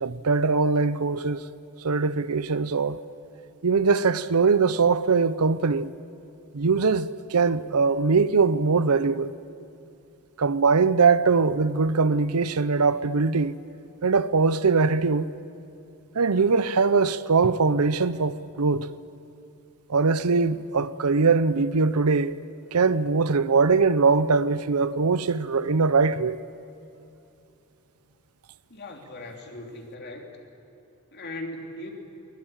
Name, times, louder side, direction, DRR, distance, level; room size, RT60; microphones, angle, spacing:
voice 1, 0.0-1.5 1.8-3.0 3.6-5.9 6.5-9.3 10.4-13.6 14.0-15.3 16.1-18.9 19.9-22.4 22.7-26.4, right 4 dB, 80° right, 0.7 m, -22 dB
voice 2, 28.7-30.3 31.1-31.9, left 1 dB, 50° left, 3.0 m, -38 dB
22.5 x 21.5 x 8.9 m
head